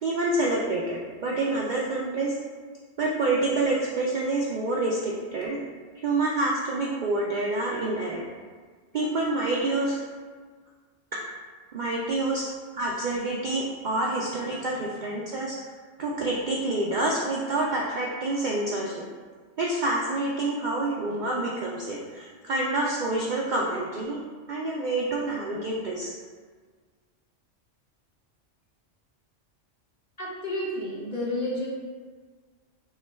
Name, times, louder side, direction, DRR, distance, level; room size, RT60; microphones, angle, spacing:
voice 1, 0.0-2.3 3.0-5.6 6.0-8.2 8.9-10.0 11.7-12.4 12.7-15.6 16.0-19.0 19.6-24.2 24.5-26.1, right 2 dB, 60° right, -3 dB, 0.5 m, -27 dB
voice 2, 30.2-31.7, left 1 dB, 40° left, -5 dB, 0.8 m, -30 dB
5.6 x 2.2 x 3.2 m, 1.5 s
omnidirectional pair, 1.2 m